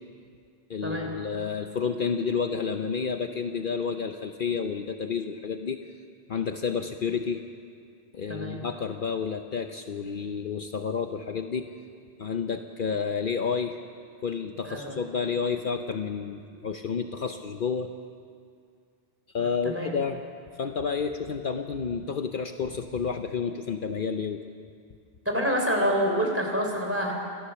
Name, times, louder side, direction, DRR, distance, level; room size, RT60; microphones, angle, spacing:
voice 1, 0.7-5.8 6.3-7.4 8.1-11.7 12.2-13.8 14.2-17.9 19.3-20.2 20.6-24.4, left 6 dB, 60° left, 6 dB, 0.9 m, -30 dB
voice 2, 14.6-15.0 19.4-19.9 25.3-27.1, equal, 15° right, 0 dB, 3.6 m, -27 dB
28.5 x 13.0 x 7.0 m, 2.2 s
omnidirectional pair, 1.0 m